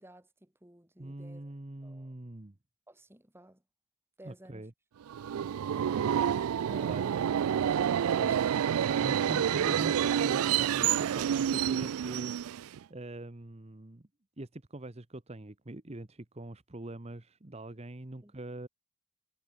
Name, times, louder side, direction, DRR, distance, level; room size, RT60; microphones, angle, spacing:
voice 1, 0.0-1.6 1.8-2.1 2.9-3.6 4.2-4.7 6.7-7.0 7.5-7.9 8.2-8.5 18.2-18.4, right 1 dB, 10° right, 1.8 m, -54 dB
voice 2, 1.0-2.6 4.2-4.7 5.7-6.1 6.9-7.1 8.1-8.3 8.9-14.1 14.4-18.7, right 1 dB, 30° right, 1.0 m, -43 dB
Subway metro underground, 5.1-12.8, right 9 dB, 75° right, 0.3 m, -28 dB
head